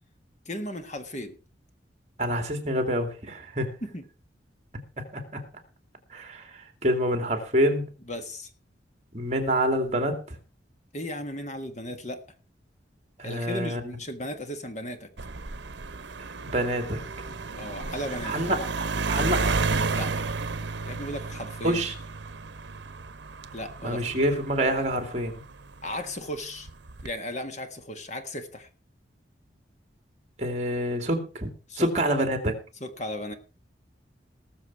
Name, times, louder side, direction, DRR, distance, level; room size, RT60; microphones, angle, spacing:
voice 1, 0.4-1.4 3.8-4.0 8.1-8.5 10.9-12.2 13.2-15.1 17.5-18.3 19.9-20.1 20.9-21.8 23.5-24.1 25.8-26.7 27.0-28.7 31.7-31.9 32.8-33.3, left 1 dB, 40° left, 7 dB, 1.6 m, -35 dB
voice 2, 2.2-3.7 5.1-5.4 6.1-7.8 9.1-10.4 13.2-13.8 16.2-17.0 18.2-18.6 19.1-19.6 21.6-21.9 23.8-25.4 30.4-31.5 31.8-32.5, equal, 35° right, 6 dB, 2.6 m, -27 dB
sound 1, 15.2-25.9 26.7-27.1, right 4 dB, 75° right, 1.0 m, -32 dB
19.0 x 7.2 x 4.8 m, 0.35 s
head